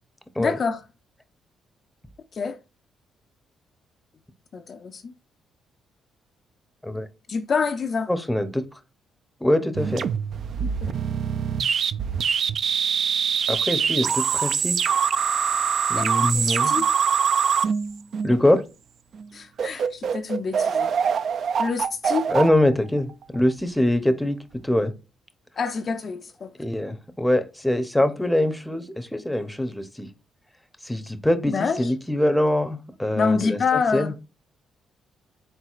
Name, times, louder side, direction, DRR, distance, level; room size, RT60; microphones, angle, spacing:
voice 1, 0.4-0.8 2.3-2.6 4.5-5.1 7.3-8.1 10.8-10.9 15.9-16.0 16.3-16.9 19.3-20.9 21.6-22.3 25.6-26.5 31.5-31.9 33.1-34.1, left 5 dB, 50° left, 0.4 m, -26 dB
voice 2, 8.1-8.6 9.4-10.0 13.5-14.8 15.9-16.8 18.2-18.6 22.3-24.4 24.6-24.9 26.6-30.1 30.8-34.3, left 1 dB, 5° left, 0.6 m, -23 dB
sound 1, 9.8-18.6 19.1-19.3 19.6-23.5, right 7 dB, 60° right, 0.3 m, -24 dB
4.4 x 3.7 x 2.4 m
cardioid pair, 90°, 0 cm